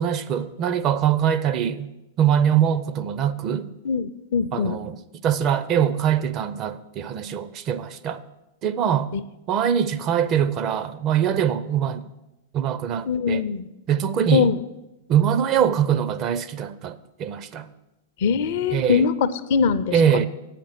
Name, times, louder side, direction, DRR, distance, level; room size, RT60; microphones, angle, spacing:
voice 1, 0.0-1.9 2.2-3.7 4.5-8.2 8.6-9.1 9.5-12.1 12.5-13.5 13.9-14.5 15.1-17.7 18.7-19.1 19.9-20.3, right 9 dB, 35° right, 0.5 m, -23 dB
voice 2, 3.8-4.8 9.1-9.2 13.1-13.7 14.3-14.6 18.2-20.3, left 6 dB, 50° left, 0.5 m, -22 dB
8.6 x 5.9 x 8.2 m
figure-of-eight pair, 95°, 0 cm